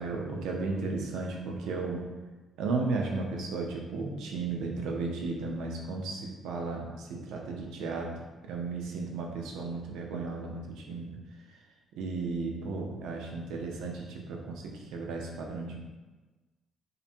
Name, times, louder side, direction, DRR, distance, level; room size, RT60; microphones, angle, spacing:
voice 1, 0.0-2.0 2.6-8.1 8.4-11.1 11.5-11.6 11.9-15.8, right 3 dB, 90° right, 0 dB, 0.4 m, -34 dB
2.5 x 2.1 x 2.6 m, 1.2 s
cardioid pair, 90°, 0 cm